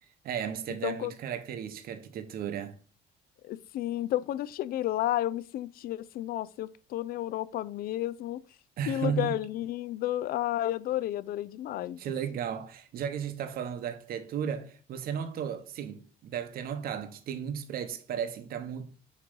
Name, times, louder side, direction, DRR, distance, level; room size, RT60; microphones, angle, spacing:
voice 1, 0.2-2.8 8.8-9.3 12.0-18.8, right 8 dB, 60° right, 0.9 m, -34 dB
voice 2, 3.4-8.4 8.9-12.0, left 13 dB, 60° left, 0.4 m, -32 dB
6.5 x 3.1 x 5.3 m
cardioid pair, 110°, 17 cm